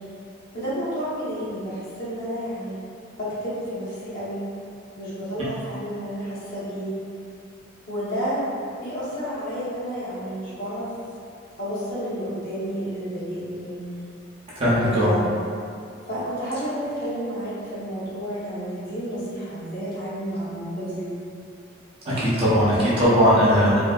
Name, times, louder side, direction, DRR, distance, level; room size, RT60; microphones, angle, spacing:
voice 1, 0.5-2.8 3.2-4.4 5.0-7.0 7.9-8.4 8.8-10.9 11.6-13.8 14.8-15.2 16.0-21.1, equal, 45° left, -11 dB, 0.9 m, -30 dB
voice 2, 14.6-15.1 22.0-23.8, equal, 30° right, -10 dB, 0.7 m, -19 dB
2.7 x 2.6 x 2.3 m, 2.5 s
head